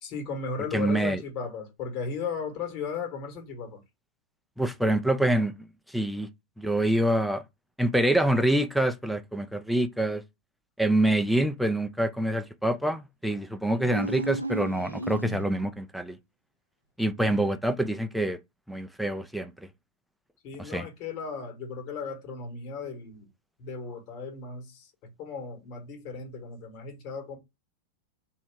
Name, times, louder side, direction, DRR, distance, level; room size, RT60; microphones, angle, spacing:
voice 1, 0.0-3.8 20.4-23.3 23.6-24.9 25.2-27.4, left 5 dB, 45° left, 1.6 m, -36 dB
voice 2, 0.7-1.2 4.6-5.5 5.9-6.3 6.6-7.4 7.8-10.2 10.8-16.2 17.0-18.4 18.7-19.5 20.6-20.9, right 1 dB, ahead, 0.5 m, -26 dB
sound 1, 13.8-15.8, right 2 dB, 85° right, 0.5 m, -34 dB
3.2 x 2.8 x 4.5 m
figure-of-eight pair, 90°, 0 cm